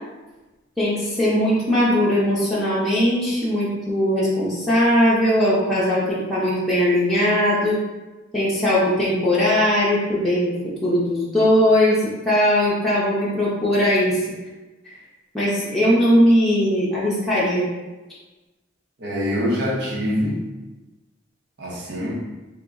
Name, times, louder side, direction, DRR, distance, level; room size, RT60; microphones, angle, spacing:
voice 1, 0.8-7.8 8.3-14.2 14.8-14.9 15.3-17.7, equal, ahead, -9 dB, 0.6 m, -19 dB
voice 2, 19.0-20.5 21.6-22.1, equal, 55° right, -3 dB, 0.6 m, -24 dB
3.2 x 2.0 x 3.6 m, 1.1 s
head